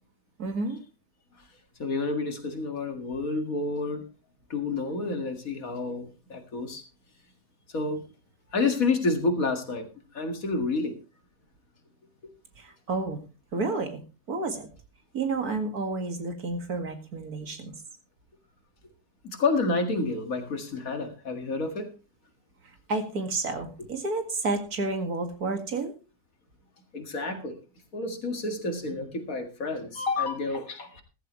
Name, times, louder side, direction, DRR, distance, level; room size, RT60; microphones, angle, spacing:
voice 1, 0.4-0.8 12.9-13.2 13.5-14.0 14.3-14.7 15.1-17.7 22.9-25.9, right 3 dB, 65° right, 2.5 m, -30 dB
voice 2, 1.8-4.0 4.5-6.8 7.7-8.0 8.5-9.9 10.1-10.9 19.2-21.9 26.9-27.6 27.9-31.0, left 3 dB, 55° left, 2.4 m, -29 dB
14.5 x 14.5 x 3.1 m
omnidirectional pair, 1.7 m